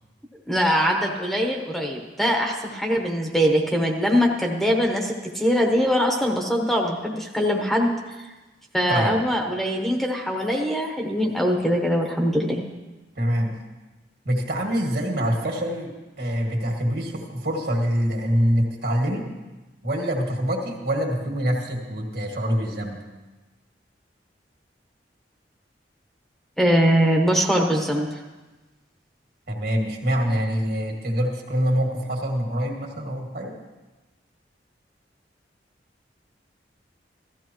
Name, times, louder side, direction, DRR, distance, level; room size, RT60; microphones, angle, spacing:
voice 1, 0.5-7.9 8.7-12.6 26.6-28.2, equal, ahead, 0 dB, 1.1 m, -22 dB
voice 2, 8.9-9.2 13.2-13.5 14.3-15.9 16.2-19.3 19.8-23.0 29.5-33.5, equal, 60° right, 1 dB, 2.1 m, -25 dB
16.0 x 14.0 x 3.1 m, 1.2 s
head